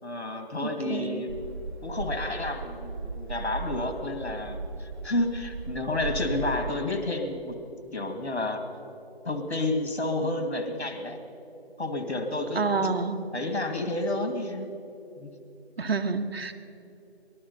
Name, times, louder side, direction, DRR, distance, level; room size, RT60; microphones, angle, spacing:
voice 1, 0.0-1.3 1.8-7.6 7.9-8.6 9.2-11.2 11.8-12.9 13.3-14.7 15.2-15.3, left 2 dB, 90° left, 4 dB, 2.4 m, -30 dB
voice 2, 0.6-1.2 10.2-10.4 12.5-13.3 15.8-16.5, right 4 dB, 70° right, 7 dB, 1.3 m, -29 dB
sound 1, 1.3-6.8, right 3 dB, 45° right, 2.1 m, -37 dB
19.5 x 12.0 x 5.6 m, 2.9 s
figure-of-eight pair, 160°, 32 cm